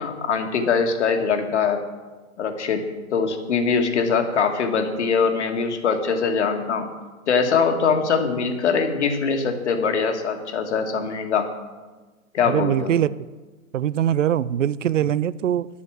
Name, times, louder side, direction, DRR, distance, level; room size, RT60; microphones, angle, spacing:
voice 1, 0.0-1.8 2.4-2.9 3.1-6.9 7.3-11.5 12.3-12.9, left 5 dB, 55° left, 5 dB, 1.8 m, -22 dB
voice 2, 12.5-13.1 13.7-15.7, right 10 dB, 60° right, 19 dB, 0.5 m, -22 dB
11.0 x 8.4 x 7.4 m, 1.3 s
hypercardioid pair, 165°, 42 cm